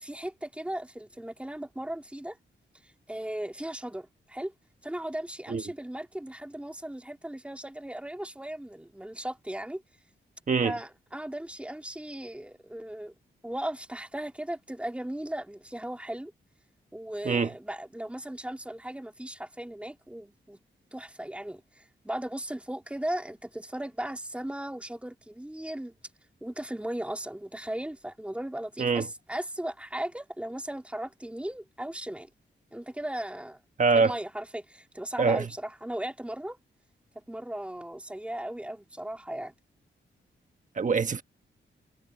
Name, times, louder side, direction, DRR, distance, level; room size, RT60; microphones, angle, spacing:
voice 1, 0.0-2.4 3.1-4.5 4.8-9.8 10.6-13.1 13.4-16.3 16.9-20.6 20.9-25.9 26.4-32.3 32.7-33.6 33.9-36.6 37.3-39.5, right 1 dB, 5° right, 2.8 m, -37 dB
voice 2, 33.8-34.1 35.2-35.5 40.8-41.2, right 4 dB, 40° right, 1.3 m, -24 dB
wide cardioid pair, 155°, 20 cm